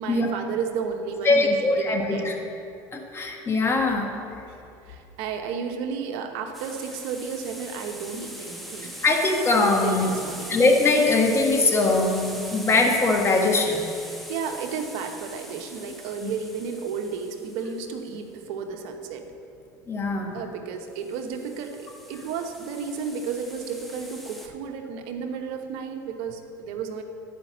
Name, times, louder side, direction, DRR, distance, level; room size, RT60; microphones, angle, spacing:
voice 1, 0.0-2.3 4.5-8.9 9.8-10.6 14.1-19.3 20.3-27.0, right 6 dB, 75° right, 4 dB, 1.0 m, -33 dB
voice 2, 1.2-2.4 2.9-4.1 9.0-10.1 10.5-13.9 16.2-16.3 19.9-20.4, left 3 dB, 25° left, 1 dB, 1.6 m, -21 dB
sound 1, 6.5-18.0 20.9-24.5, equal, ahead, 1.1 m, -41 dB
11.0 x 5.1 x 7.2 m, 2.6 s
supercardioid pair, 100°, 9 cm